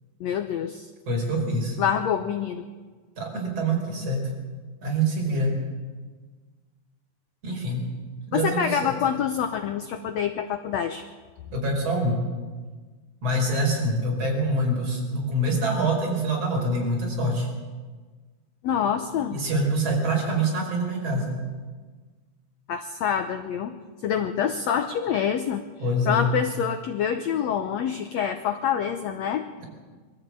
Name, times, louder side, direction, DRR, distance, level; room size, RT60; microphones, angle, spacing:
voice 1, 0.2-0.9 1.8-2.6 8.3-11.1 18.6-19.4 22.7-23.8 24.0-25.6 26.1-29.4, left 8 dB, 80° left, 7 dB, 1.6 m, -26 dB
voice 2, 1.1-1.8 3.2-4.3 4.8-5.7 7.4-7.8 8.3-8.9 11.5-12.2 13.2-17.5 19.3-21.3 25.8-26.3 29.6-29.7, right 1 dB, 45° right, -1 dB, 5.9 m, -25 dB
23.5 x 13.5 x 8.7 m, 1.4 s
omnidirectional pair, 4.1 m